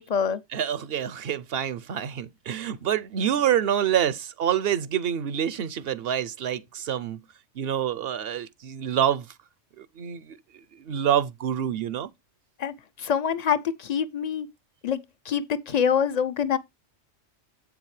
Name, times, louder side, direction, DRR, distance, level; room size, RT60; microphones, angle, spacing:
voice 1, 0.0-0.4 12.6-14.5 14.8-16.6, left 7 dB, 45° left, 0.6 m, -26 dB
voice 2, 0.5-7.2 7.6-9.3 9.8-12.1, right 9 dB, 60° right, 0.7 m, -27 dB
7.9 x 7.1 x 3.1 m
omnidirectional pair, 1.3 m